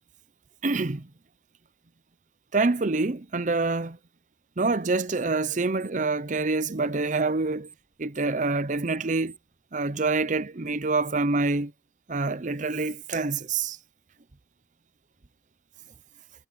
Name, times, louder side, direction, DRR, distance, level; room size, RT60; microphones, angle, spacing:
voice 1, 0.6-1.1 2.5-4.0 4.6-7.7 8.0-9.3 9.7-11.7 12.1-13.8, right 3 dB, 45° right, 0.7 m, -26 dB
sound 1, 4.6-4.8 5.1-6.0 6.3-9.6, right 7 dB, 20° right, 7.4 m, -52 dB
head